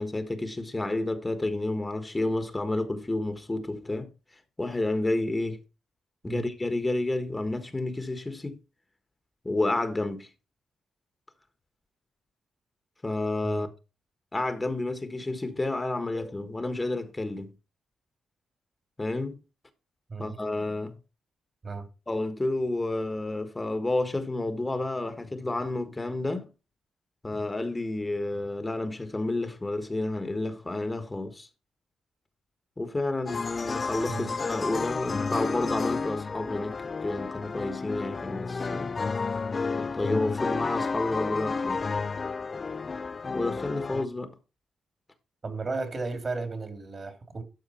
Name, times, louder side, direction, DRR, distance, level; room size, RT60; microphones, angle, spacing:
voice 1, 0.0-4.1 4.6-5.6 6.2-8.6 9.4-10.3 13.0-13.7 14.3-17.5 19.0-19.4 20.2-21.0 22.1-26.5 27.2-31.5 32.8-38.9 39.8-41.8 43.3-44.3, left 2 dB, 20° left, 1.4 m, -30 dB
sound 1, 33.3-44.0, left 4 dB, 40° left, 0.5 m, -31 dB
voice 2, 45.4-47.4, right 3 dB, 45° right, 2.6 m, -34 dB
12.0 x 4.7 x 4.2 m
supercardioid pair, 60°, 0 cm